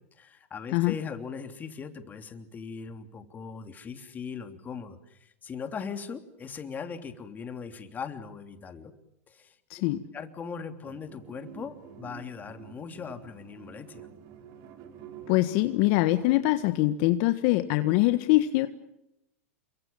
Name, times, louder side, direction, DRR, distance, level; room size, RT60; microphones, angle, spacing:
voice 1, 0.1-8.9 9.3-9.6 10.1-14.1, left 6 dB, 20° left, 7 dB, 3.2 m, -39 dB
voice 2, 9.7-10.0 15.3-18.7, left 17 dB, 55° left, 9 dB, 1.6 m, -23 dB
sound 1, 10.8-16.9, right 8 dB, 50° right, 4.9 m, -48 dB
29.0 x 24.0 x 7.4 m, 0.82 s
hypercardioid pair, 115°, 8 cm